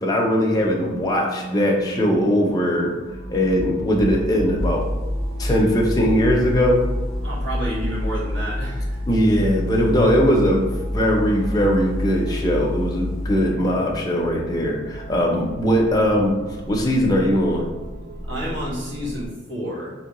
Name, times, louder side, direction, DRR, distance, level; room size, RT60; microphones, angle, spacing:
voice 1, 0.0-3.0 3.3-4.9 5.4-6.9 9.1-16.4 16.7-17.7, equal, 20° left, -1 dB, 0.5 m, -20 dB
sound 1, 0.5-19.3, equal, 55° right, 0.6 m, -34 dB
sound 2, 4.6-13.5, left 1 dB, 35° right, 1.1 m, -28 dB
voice 2, 7.2-9.0 18.3-19.9, equal, 80° right, -6 dB, 1.4 m, -30 dB
3.7 x 2.9 x 2.9 m, 1.2 s
head